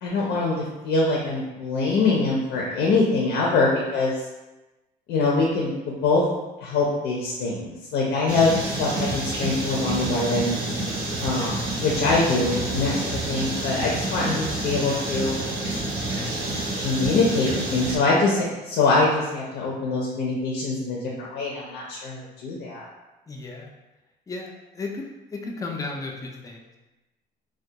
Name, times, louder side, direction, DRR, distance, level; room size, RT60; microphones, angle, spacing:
voice 1, 0.0-4.2 5.1-5.7 6.0-6.2 6.6-10.6 11.2-15.4 16.8-22.8, left 3 dB, 70° left, -3 dB, 0.5 m, -24 dB
sound 1, 8.3-18.0, right 2 dB, 65° right, 0.7 m, -28 dB
voice 2, 23.3-23.7 24.3-25.0 25.3-26.8, left 3 dB, 20° left, 1 dB, 0.4 m, -34 dB
2.2 x 2.2 x 2.7 m, 1.1 s
cardioid pair, 110°, 17 cm